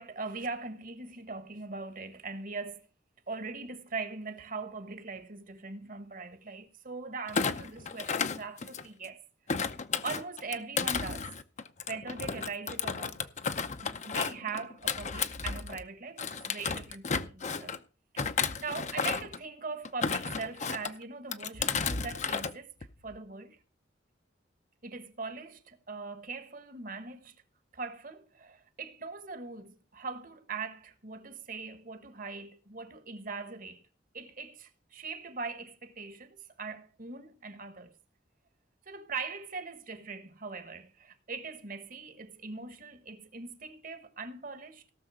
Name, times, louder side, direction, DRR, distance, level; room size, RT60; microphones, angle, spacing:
voice 1, 0.0-2.8 3.3-9.2 10.0-11.3 11.9-13.2 13.8-17.8 18.1-18.2 18.6-22.7 23.0-23.6 24.8-27.3 27.7-33.9 34.1-37.9 38.9-44.8, right 4 dB, 50° right, 1.4 m, -41 dB
Thump thud, 7.3-9.1 9.5-15.8 16.2-17.8 18.2-19.4 19.8-20.9 21.3-22.5 22.8-23.2, left 5 dB, 40° left, 0.7 m, -33 dB
17.5 x 6.6 x 4.9 m
head